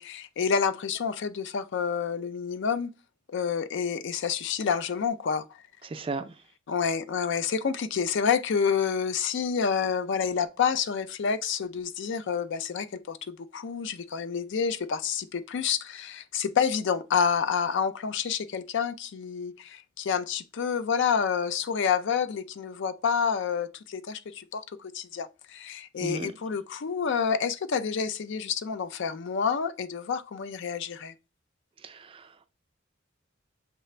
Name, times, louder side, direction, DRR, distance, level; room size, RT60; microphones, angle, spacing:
voice 1, 0.0-2.9 3.3-5.4 6.7-31.1, left 6 dB, 60° left, 0.4 m, -28 dB
voice 2, 5.8-6.4 26.0-26.3 31.8-32.5, right 3 dB, 25° right, 0.4 m, -36 dB
6.6 x 2.4 x 3.2 m
head